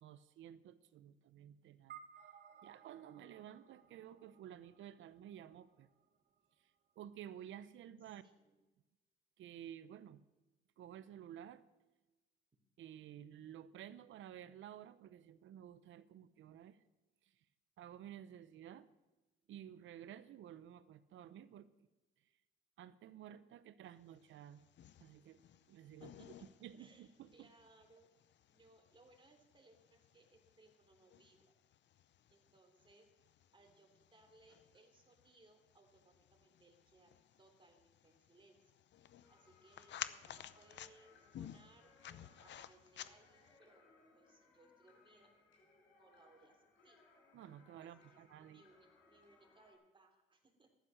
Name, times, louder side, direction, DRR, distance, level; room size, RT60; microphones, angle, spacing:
voice 1, 0.0-2.0 2.6-5.9 7.0-8.2 9.4-10.3 10.8-11.6 12.8-16.8 17.8-18.9 19.5-21.7 22.8-24.6 25.0-27.5 47.3-48.6, right 10 dB, 75° right, 14 dB, 0.9 m, -53 dB
sound 1, 1.9-6.5, right 8 dB, 50° right, 1.4 m, -60 dB
voice 2, 8.0-8.6 26.0-26.5 26.8-28.1 28.5-31.4 32.3-33.1 33.5-37.1 37.4-38.6 39.3-43.8 44.1-45.3 45.9-47.0 47.8-50.7, right 2 dB, 25° right, 3 dB, 3.6 m, -67 dB
sound 2, 24.2-43.6, left 10 dB, 65° left, 0.7 m, -55 dB
sound 3, 39.2-49.7, left 3 dB, 85° left, 5.4 m, -68 dB
14.5 x 12.0 x 6.6 m, 1.1 s
cardioid pair, 90°, 20 cm